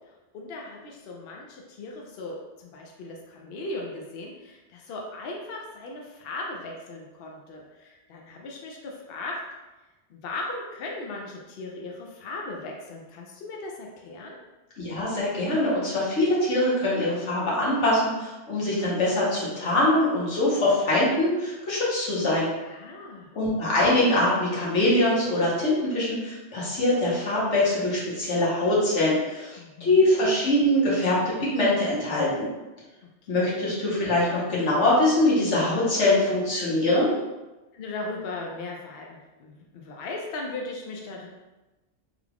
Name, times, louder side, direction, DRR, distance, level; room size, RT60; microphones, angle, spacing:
voice 1, 0.3-9.4 10.1-14.4 22.7-23.3 29.6-30.1 33.3-33.6 37.7-41.3, left 2 dB, 65° left, 0 dB, 0.7 m, -37 dB
voice 2, 14.8-22.5 23.3-32.5 33.3-37.1, left 1 dB, 90° left, -6 dB, 1.4 m, -23 dB
3.6 x 2.3 x 3.4 m, 1.1 s
omnidirectional pair, 1.2 m